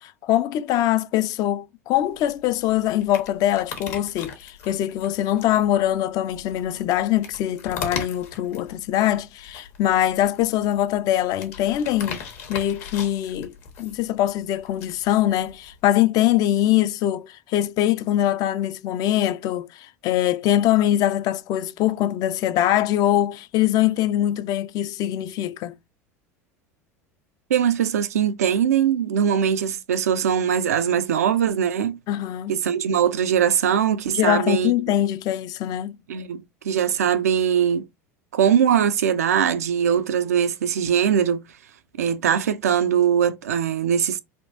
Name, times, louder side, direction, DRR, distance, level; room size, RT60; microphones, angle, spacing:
voice 1, 0.0-12.2 12.5-13.5 13.8-25.8 32.1-32.6 34.1-36.0, left 12 dB, 50° left, 0.4 m, -23 dB
sound 1, 2.0-15.8, left 6 dB, 70° left, 1.1 m, -39 dB
voice 2, 27.5-32.0 32.5-34.7 36.1-37.9 38.3-41.4 42.0-44.2, right 8 dB, 85° right, 0.4 m, -21 dB
3.4 x 2.4 x 2.7 m
hypercardioid pair, 80°, 8 cm